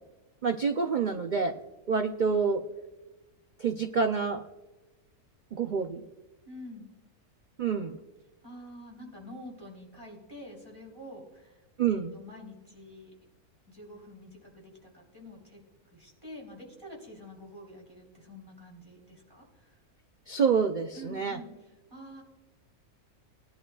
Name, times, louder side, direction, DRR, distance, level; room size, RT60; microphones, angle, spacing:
voice 1, 0.4-1.6 1.9-2.6 3.6-4.4 5.5-6.0 7.6-8.0 11.8-12.1 20.3-21.4, right 5 dB, 80° right, 6 dB, 0.4 m, -27 dB
voice 2, 6.4-6.9 8.4-13.1 13.7-15.6 15.9-19.8 20.9-22.2, left 1 dB, 15° right, -2 dB, 3.4 m, -47 dB
19.0 x 11.0 x 2.3 m, 1.1 s
omnidirectional pair, 1.6 m